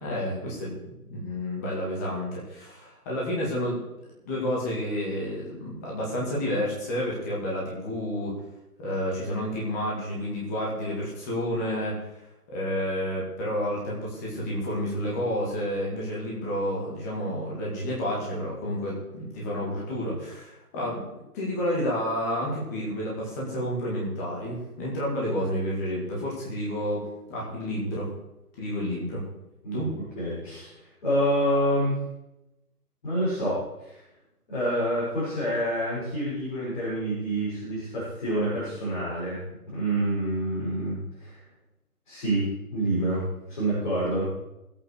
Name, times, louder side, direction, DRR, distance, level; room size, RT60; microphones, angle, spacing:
voice 1, 0.0-3.8 4.2-8.3 8.8-12.0 12.5-21.0 21.3-27.0 27.3-28.1 28.6-29.2 29.7-29.9, equal, 10° left, -5 dB, 2.1 m, -30 dB
voice 2, 30.2-30.7 31.0-32.0 33.0-34.0 34.5-41.4 42.1-44.3, right 1 dB, 30° left, -10 dB, 6.6 m, -27 dB
18.5 x 8.8 x 4.9 m, 0.90 s
hypercardioid pair, 170°, 45 cm